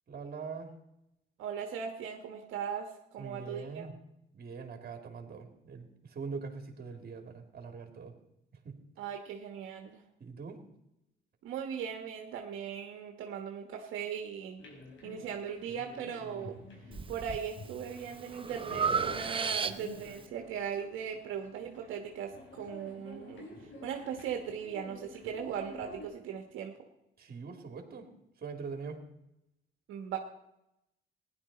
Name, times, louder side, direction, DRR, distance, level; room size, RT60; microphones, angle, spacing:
voice 1, 0.1-0.7 3.2-4.0 4.3-8.1 8.6-8.8 10.2-10.6 27.2-28.1 28.4-29.0, right 5 dB, 50° right, 4 dB, 2.7 m, -43 dB
voice 2, 1.4-3.9 9.0-10.0 11.4-14.6 15.0-16.6 17.1-23.5 23.8-26.7 29.9-30.2, right 7 dB, 85° right, 3 dB, 1.3 m, -38 dB
sound 1, 14.6-26.1, left 2 dB, 70° left, 4.2 m, -51 dB
Breathing, 16.9-17.4 17.9-20.1, right 5 dB, 25° right, 0.7 m, -33 dB
16.0 x 10.5 x 4.3 m, 0.85 s
cardioid pair, 90°, 20 cm